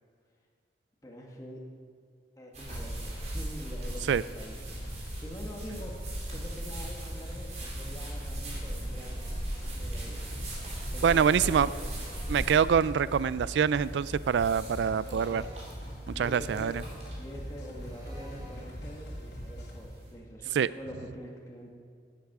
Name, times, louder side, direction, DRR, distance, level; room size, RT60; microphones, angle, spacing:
voice 1, 1.0-1.6 2.4-4.6 5.2-6.0 6.3-10.2 10.9-11.9 15.1-15.5 16.1-16.8 17.2-21.7, equal, 20° left, -1 dB, 1.7 m, -45 dB
sound 1, 2.5-20.1, right 1 dB, 40° right, 3.6 m, -40 dB
sound 2, 4.4-19.8, equal, 75° left, 3.0 m, -42 dB
Drill, 8.9-9.7 11.9-12.8 14.9-15.7 17.8-18.7, equal, 20° right, 3.2 m, -53 dB
voice 2, 11.0-11.7 12.3-15.4 16.1-16.7 20.5-20.7, right 7 dB, 85° right, 18 dB, 0.3 m, -25 dB
17.5 x 8.4 x 6.0 m, 2.2 s
head